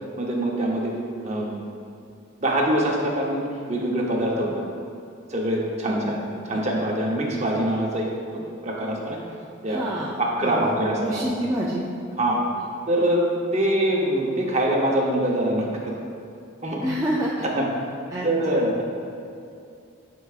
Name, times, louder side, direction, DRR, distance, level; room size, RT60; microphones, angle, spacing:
voice 1, 0.2-0.9 1.2-1.6 2.4-4.6 5.3-6.2 6.5-8.1 8.3-9.2 9.6-9.8 10.2-11.2 12.2-12.4 12.9-13.2 13.5-15.9 16.6-16.8 17.5-17.7 18.2-18.8, right 1 dB, 35° right, -2 dB, 0.8 m, -24 dB
voice 2, 5.8-6.4 8.4-8.5 9.7-11.8 16.8-17.5 18.1-18.6, right 1 dB, 15° right, -6 dB, 0.4 m, -28 dB
9.9 x 4.7 x 2.4 m, 2.6 s
head